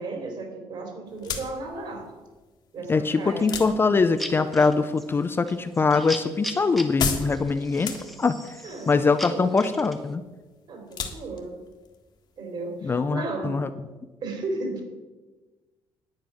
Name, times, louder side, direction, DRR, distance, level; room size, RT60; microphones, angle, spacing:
voice 1, 0.0-2.1 2.7-3.5 8.6-8.9 9.3-9.7 10.7-11.6 12.4-13.6 14.2-14.8, right 3 dB, 50° right, 3 dB, 3.4 m, -34 dB
sound 1, 1.1-13.1, left 5 dB, 45° left, 1.6 m, -37 dB
voice 2, 2.9-7.9 8.2-8.4 8.9-10.2 12.8-13.7, left 4 dB, 20° left, 10 dB, 0.5 m, -23 dB
sound 2, 3.2-10.1, left 1 dB, ahead, 1.3 m, -40 dB
10.5 x 8.8 x 6.1 m, 1.2 s
cardioid pair, 135°, 10 cm